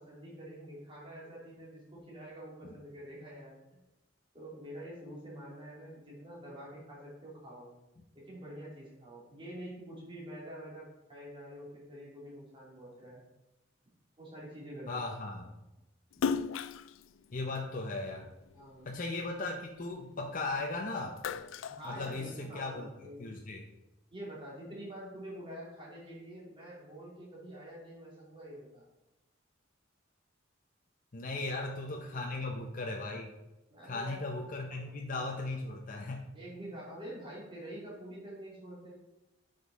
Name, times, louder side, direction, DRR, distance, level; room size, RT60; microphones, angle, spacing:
voice 1, 0.0-3.8 4.3-7.7 8.3-13.2 14.2-15.0 18.5-18.9 21.7-23.3 24.1-28.8 31.3-31.4 32.1-32.3 33.7-35.0 36.3-38.9, equal, 25° right, -5 dB, 2.8 m, -47 dB
voice 2, 14.9-15.5 17.3-18.3 18.9-21.2 21.9-22.9 23.2-23.7 31.1-33.3 33.8-36.3, left 2 dB, 45° left, 1 dB, 0.7 m, -37 dB
Splash splatter, 16.1-18.7 19.1-20.6 20.9-22.7, left 6 dB, 85° left, 0.4 m, -37 dB
9.0 x 5.3 x 4.1 m, 0.98 s
head